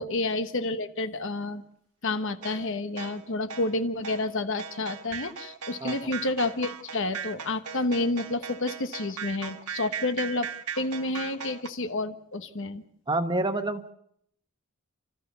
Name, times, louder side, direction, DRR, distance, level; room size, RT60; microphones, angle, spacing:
voice 1, 0.0-1.6 2.0-12.8, left 2 dB, 55° left, 10 dB, 1.1 m, -30 dB
sound 1, 2.4-11.7, right 7 dB, 85° right, 1.3 m, -38 dB
voice 2, 5.8-6.1 13.1-13.9, right 2 dB, 20° right, 8 dB, 1.2 m, -28 dB
29.5 x 14.0 x 6.8 m, 0.70 s
head